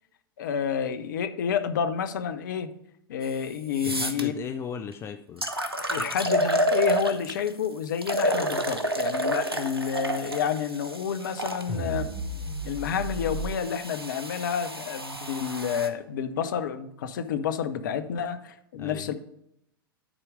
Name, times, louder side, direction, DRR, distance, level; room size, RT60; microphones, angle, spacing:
voice 1, 0.4-2.7 3.1-4.3 5.9-12.1 12.6-19.1, left 7 dB, 55° left, 10 dB, 0.7 m, -29 dB
sound 1, 3.2-3.3 3.7-4.2 4.9-5.0 5.4-7.5 8.0-11.6 12.5-15.9, equal, 85° right, 0.9 m, -29 dB
voice 2, 3.8-5.5 18.7-19.1, left 7 dB, 20° left, 8 dB, 0.4 m, -37 dB
sound 2, 11.7-13.5, right 1 dB, 15° right, 2.6 m, -33 dB
10.0 x 4.5 x 4.9 m, 0.77 s
figure-of-eight pair, 95°, 12 cm